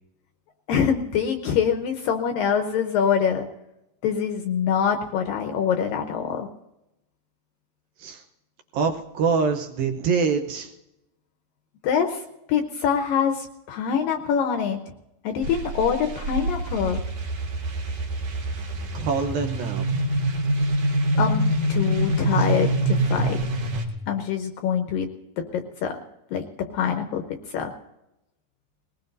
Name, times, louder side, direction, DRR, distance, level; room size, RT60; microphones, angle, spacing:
voice 1, 0.7-3.5 4.0-6.5 11.8-12.2 12.5-14.8 15.2-17.0 20.8-23.4 24.1-25.1 25.4-25.9 26.3-27.7, left 7 dB, 75° left, 5 dB, 2.2 m, -25 dB
voice 2, 8.7-10.7 18.9-19.9 22.4-22.5, right 5 dB, 70° right, 5 dB, 2.3 m, -25 dB
sound 1, 15.4-23.8, right 1 dB, 55° right, 3.1 m, -25 dB
20.5 x 19.5 x 2.6 m, 0.88 s
omnidirectional pair, 4.8 m